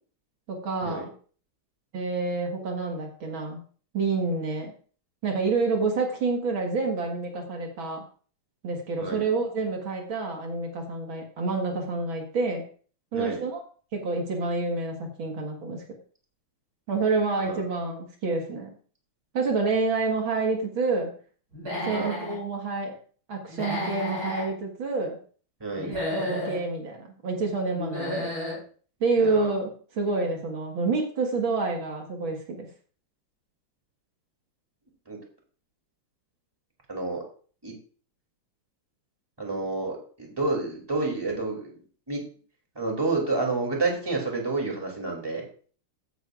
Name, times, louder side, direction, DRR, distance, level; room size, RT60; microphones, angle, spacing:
voice 1, 0.5-1.1 1.9-3.6 3.9-4.7 5.2-8.0 8.6-12.6 13.1-13.6 13.9-15.8 16.9-18.7 19.3-21.1 21.9-22.9 23.3-25.2 25.8-28.3 29.0-32.7, right 3 dB, 70° right, 1 dB, 2.5 m, -28 dB
Human voice / Animal, 21.5-22.4 23.5-24.5 25.7-26.6 27.7-28.6, left 1 dB, 45° right, 6.1 m, -32 dB
voice 2, 25.6-25.9 29.2-29.5 35.1-35.2 36.9-37.2 37.6-37.7 39.4-41.7 42.1-42.2 42.7-45.4, right 3 dB, 10° right, 0 dB, 2.8 m, -29 dB
15.5 x 9.8 x 2.5 m, 0.42 s
omnidirectional pair, 2.3 m